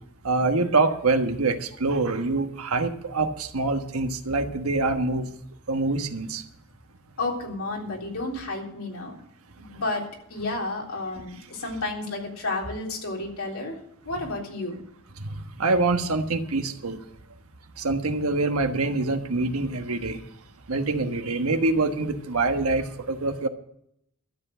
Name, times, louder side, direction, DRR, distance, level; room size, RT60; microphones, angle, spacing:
voice 1, 0.2-5.3 5.7-6.4 15.6-17.0 17.8-20.2 20.7-23.5, right 3 dB, 80° right, 7 dB, 1.3 m, -25 dB
voice 2, 7.2-9.1 9.6-10.0 10.3-13.8 14.1-14.8, left 2 dB, 80° left, -1 dB, 3.6 m, -31 dB
13.0 x 7.8 x 7.7 m, 0.73 s
head